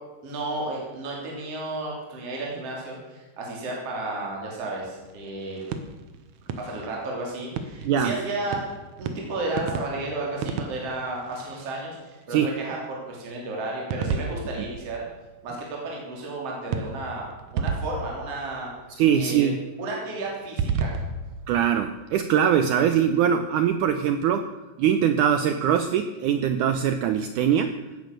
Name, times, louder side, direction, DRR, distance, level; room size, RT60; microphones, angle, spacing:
voice 1, 0.2-5.6 6.6-8.7 9.0-15.0 15.4-18.7 19.1-19.5 19.8-20.9, right 2 dB, 40° right, -2 dB, 4.0 m, -33 dB
sound 1, 4.8-12.2 13.9-15.6 16.7-19.1 20.4-22.5, right 5 dB, 65° right, 2.0 m, -34 dB
voice 2, 18.9-19.6 21.5-24.5 24.8-27.7, right 8 dB, 85° right, 9 dB, 1.7 m, -22 dB
17.5 x 10.0 x 6.6 m, 1.2 s
omnidirectional pair, 4.5 m